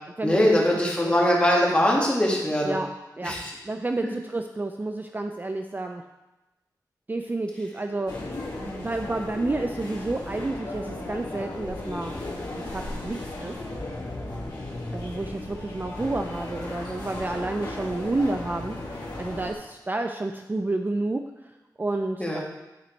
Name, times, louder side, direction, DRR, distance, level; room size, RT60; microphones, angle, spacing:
voice 1, 0.2-2.8 3.2-3.5 22.2-22.4, left 1 dB, 15° left, -3 dB, 1.9 m, -22 dB
voice 2, 3.6-6.0 7.1-12.2 12.7-13.5 14.9-21.2 21.8-22.4, right 2 dB, 25° right, 5 dB, 0.4 m, -30 dB
sound 1, 8.1-19.5, left 2 dB, 75° left, 2.1 m, -35 dB
9.5 x 4.0 x 4.5 m, 1.0 s
wide cardioid pair, 75°, 7 cm